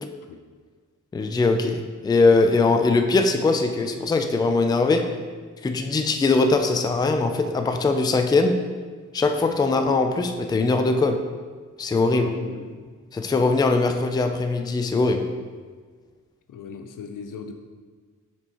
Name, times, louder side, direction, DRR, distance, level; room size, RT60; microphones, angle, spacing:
voice 1, 1.1-5.2 5.6-8.6 9.1-11.2 11.8-12.3 13.1-15.3, left 3 dB, 15° left, 6 dB, 0.3 m, -21 dB
voice 2, 12.1-12.9 16.5-17.5, left 5 dB, 85° left, 7 dB, 0.6 m, -37 dB
7.7 x 4.4 x 2.9 m, 1.5 s
wide cardioid pair, 140°, 31 cm